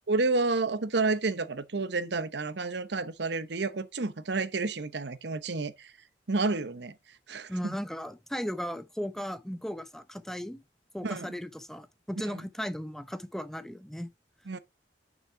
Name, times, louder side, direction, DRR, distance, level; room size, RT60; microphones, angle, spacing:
voice 1, 0.1-5.9 6.3-6.9 7.3-7.8 11.0-11.3 12.3-12.4 14.5-14.6, right 3 dB, 70° right, 0.9 m, -30 dB
voice 2, 7.5-10.6 10.9-14.1, equal, ahead, 0.7 m, -36 dB
6.5 x 5.9 x 5.7 m
head